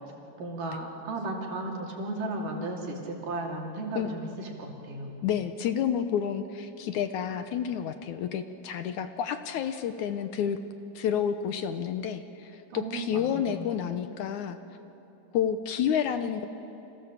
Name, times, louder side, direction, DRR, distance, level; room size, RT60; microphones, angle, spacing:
voice 1, 0.4-5.1 12.7-13.6, right 2 dB, 70° right, 0 dB, 4.3 m, -35 dB
voice 2, 5.2-10.6 11.0-14.6 15.3-16.5, left 8 dB, 70° left, 9 dB, 2.1 m, -30 dB
30.0 x 26.0 x 7.5 m, 3.0 s
omnidirectional pair, 3.9 m